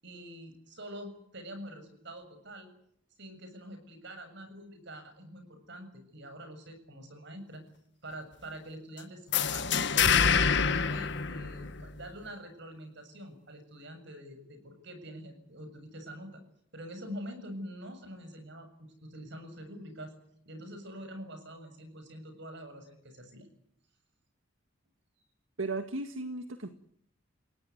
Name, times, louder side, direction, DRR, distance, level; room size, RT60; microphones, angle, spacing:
voice 1, 0.0-2.7 3.2-7.6 8.0-9.6 9.9-10.3 10.5-16.4 16.7-20.1 20.5-23.5, equal, 65° right, 8 dB, 7.3 m, -45 dB
sound 1, 9.3-12.0, left 6 dB, 60° left, 1.6 m, -26 dB
voice 2, 25.6-26.7, right 3 dB, 80° right, 7 dB, 1.9 m, -35 dB
30.0 x 17.5 x 9.5 m, 0.69 s
head